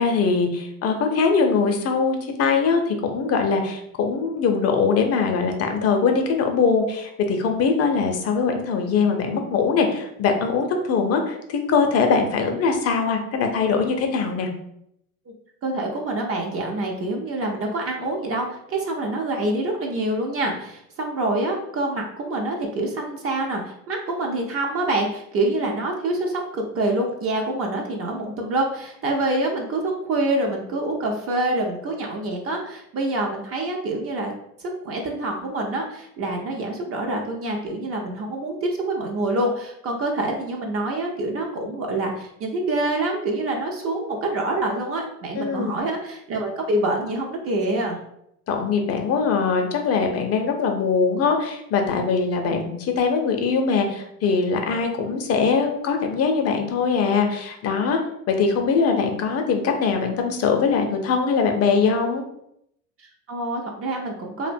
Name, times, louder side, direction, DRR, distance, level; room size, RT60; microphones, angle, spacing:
voice 1, 0.0-14.5 45.4-45.8 48.5-58.0 58.3-62.2, left 5 dB, 40° left, 4 dB, 0.5 m, -22 dB
voice 2, 15.6-34.3 34.6-48.0 63.0-64.5, right 2 dB, 35° right, 1 dB, 0.5 m, -26 dB
2.4 x 2.1 x 2.5 m, 0.76 s
hypercardioid pair, 80°, 40 cm